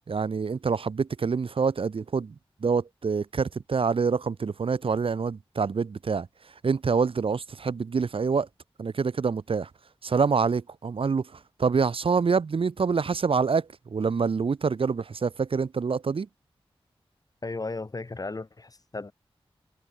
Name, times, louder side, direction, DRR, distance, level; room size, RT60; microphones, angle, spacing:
voice 1, 0.1-2.3 2.6-6.3 6.6-8.5 8.8-9.7 10.0-11.3 11.6-16.3, right 5 dB, 70° right, 1.1 m, -26 dB
voice 2, 17.4-19.1, left 3 dB, 40° left, 4.5 m, -35 dB
wide cardioid pair, 95°, 10 cm